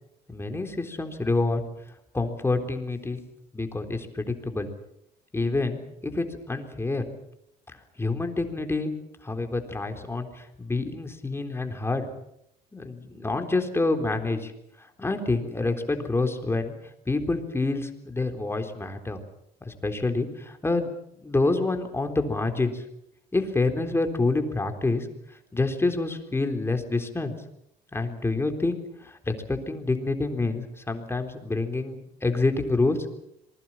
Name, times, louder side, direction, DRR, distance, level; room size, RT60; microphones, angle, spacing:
voice 1, 0.3-1.6 2.1-3.2 3.5-4.7 5.3-7.0 8.0-9.0 9.2-12.1 12.7-14.5 14.8-16.7 17.1-19.2 19.6-20.9 21.2-22.8 23.3-25.1 25.5-27.4 27.9-33.0, left 3 dB, 15° left, 6 dB, 3.8 m, -27 dB
26.5 x 20.5 x 7.4 m, 0.78 s
cardioid pair, 110°, 17 cm